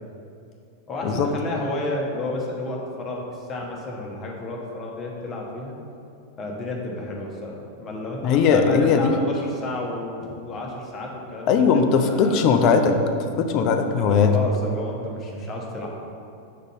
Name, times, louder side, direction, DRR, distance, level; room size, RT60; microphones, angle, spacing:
voice 1, 0.9-5.8 6.4-11.6 11.9-12.4 14.0-15.9, left 2 dB, 25° left, -1 dB, 1.2 m, -31 dB
voice 2, 8.2-9.1 11.5-13.0 13.4-14.3, left 5 dB, 40° left, 6 dB, 0.6 m, -19 dB
6.3 x 4.0 x 5.4 m, 2.5 s
figure-of-eight pair, 90°, 0 cm